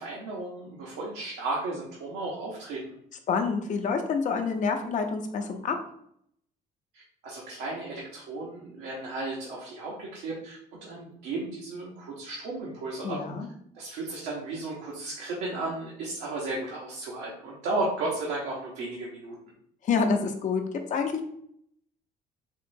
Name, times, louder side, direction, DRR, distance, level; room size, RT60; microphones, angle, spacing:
voice 1, 0.0-2.9 6.9-13.2 13.7-19.3, right 2 dB, 90° right, -4 dB, 0.8 m, -34 dB
voice 2, 3.3-5.8 13.0-13.5 19.8-21.3, left 5 dB, 45° left, 5 dB, 0.6 m, -27 dB
3.6 x 3.0 x 2.6 m, 0.69 s
cardioid pair, 110°, 17 cm